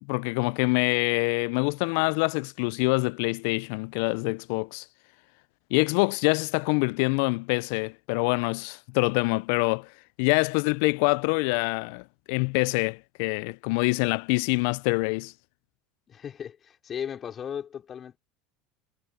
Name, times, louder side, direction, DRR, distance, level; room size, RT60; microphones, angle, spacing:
voice 1, 0.0-4.8 5.7-9.9 10.2-15.3, left 30 dB, 65° left, 0.6 m, -25 dB
voice 2, 16.1-18.2, left 8 dB, 35° left, 3.9 m, -36 dB
hypercardioid pair, 80°, 0 cm